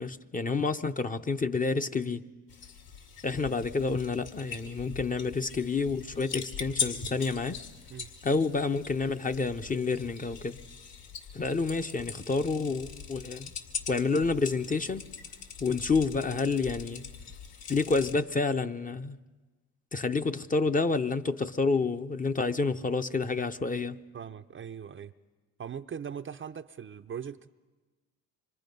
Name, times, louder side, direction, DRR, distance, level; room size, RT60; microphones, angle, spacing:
voice 1, 0.0-2.2 3.2-7.6 8.2-10.6 11.3-13.5 13.9-15.1 15.6-17.0 17.7-19.2 19.9-24.0, left 4 dB, 20° left, 0.7 m, -29 dB
sound 1, 2.5-18.1, left 7 dB, 65° left, 2.5 m, -41 dB
voice 2, 24.1-25.1 25.6-27.5, right 8 dB, 30° right, 0.6 m, -40 dB
25.5 x 23.0 x 5.3 m
cardioid pair, 90°, 39 cm